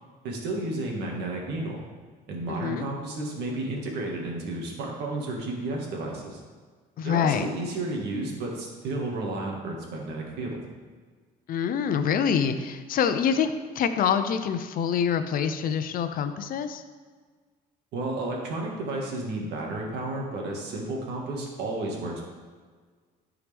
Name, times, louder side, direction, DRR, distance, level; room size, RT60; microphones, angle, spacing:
voice 1, 0.2-1.8 2.3-6.4 7.0-10.6 17.9-22.2, right 2 dB, 80° right, -1 dB, 1.9 m, -32 dB
voice 2, 2.5-2.8 7.0-7.5 11.5-16.8, left 7 dB, 55° left, 10 dB, 0.7 m, -26 dB
13.0 x 4.9 x 3.5 m, 1.5 s
cardioid pair, 110°, 17 cm